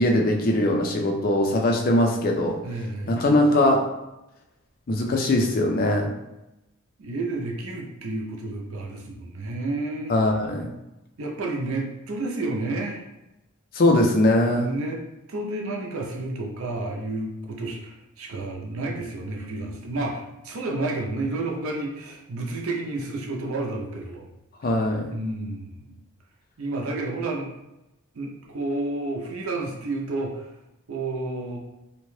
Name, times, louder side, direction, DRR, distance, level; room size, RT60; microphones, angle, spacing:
voice 1, 0.0-2.6 3.1-3.9 4.9-6.1 10.1-10.7 13.7-14.7 24.6-25.2, left 1 dB, 40° left, 2 dB, 0.4 m, -21 dB
voice 2, 2.6-3.1 7.0-10.2 11.2-13.0 14.5-15.0 15.3-24.3 25.1-25.9 26.6-27.5 28.1-30.5 30.9-31.6, right 2 dB, 70° right, -1 dB, 0.5 m, -30 dB
2.7 x 2.1 x 3.0 m, 0.94 s
head